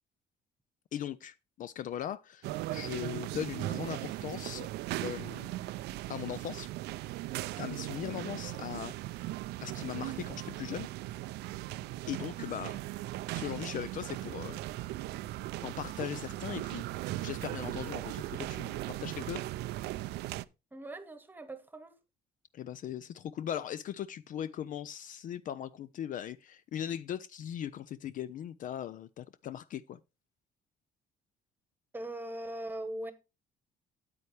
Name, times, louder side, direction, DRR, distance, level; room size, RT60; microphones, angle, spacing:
voice 1, 0.9-4.7 5.0-5.6 6.1-6.7 7.6-8.9 9.6-10.9 12.1-12.8 13.3-14.6 15.6-19.4 22.5-30.0, left 10 dB, 50° left, 0.4 m, -39 dB
sound 1, 2.4-20.4, right 16 dB, 80° right, 0.4 m, -38 dB
voice 2, 20.7-22.0 31.9-33.1, right 1 dB, 10° right, 1.2 m, -40 dB
8.6 x 8.4 x 3.3 m
cardioid pair, 110°, 17 cm